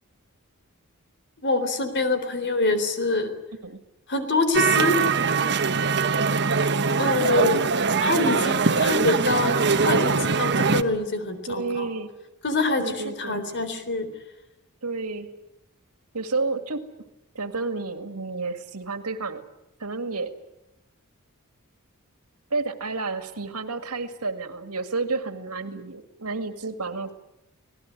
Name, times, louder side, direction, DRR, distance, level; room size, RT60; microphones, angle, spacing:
voice 1, 1.4-3.3 4.1-5.0 7.0-7.6 8.0-11.9 12.4-14.1, left 2 dB, 55° left, 10 dB, 3.7 m, -25 dB
sound 1, 4.5-10.8, right 5 dB, 50° right, 1.3 m, -22 dB
voice 2, 11.4-12.1 12.8-13.4 14.8-15.3 16.1-16.8 17.3-19.4 19.8-20.3 22.5-27.1, right 3 dB, 85° right, 8 dB, 2.2 m, -30 dB
26.5 x 19.0 x 9.9 m, 0.91 s
head